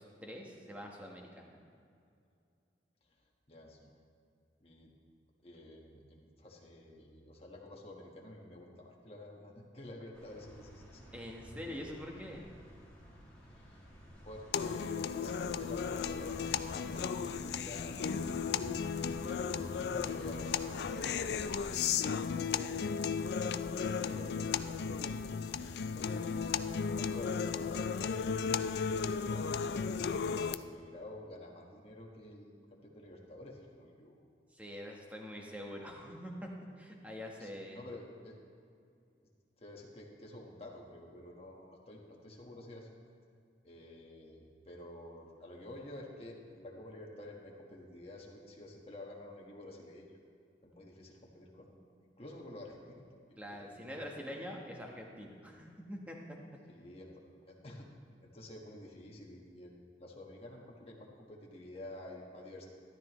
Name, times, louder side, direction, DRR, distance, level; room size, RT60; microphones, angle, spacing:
voice 1, 0.0-1.5 11.1-12.5 34.5-36.5 36.8-37.8 53.4-56.2, equal, 10° right, 0 dB, 1.1 m, -45 dB
voice 2, 3.5-3.9 4.6-4.9 5.4-11.0 13.4-13.8 14.2-18.5 19.9-25.6 25.9-34.2 37.4-38.4 39.6-42.9 43.6-50.1 50.6-51.8 52.2-53.0 53.6-54.1 56.7-57.1 57.5-57.9 58.2-62.7, left 1 dB, 35° left, -1 dB, 1.3 m, -50 dB
sound 1, 10.1-21.8, equal, 10° left, 2.2 m, -51 dB
sound 2, 14.5-30.5, left 6 dB, 65° left, 0.3 m, -35 dB
13.0 x 12.5 x 3.1 m, 2.4 s
head